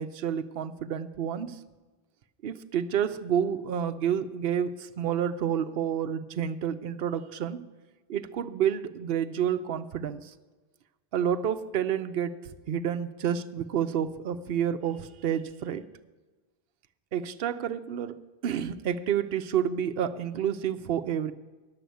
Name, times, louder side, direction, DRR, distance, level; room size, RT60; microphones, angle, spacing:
voice 1, 0.0-1.6 2.4-7.6 8.1-10.3 11.1-12.4 12.7-15.8 17.1-21.3, right 9 dB, 70° right, 11 dB, 0.9 m, -29 dB
10.5 x 7.8 x 8.1 m, 1.3 s
omnidirectional pair, 1.0 m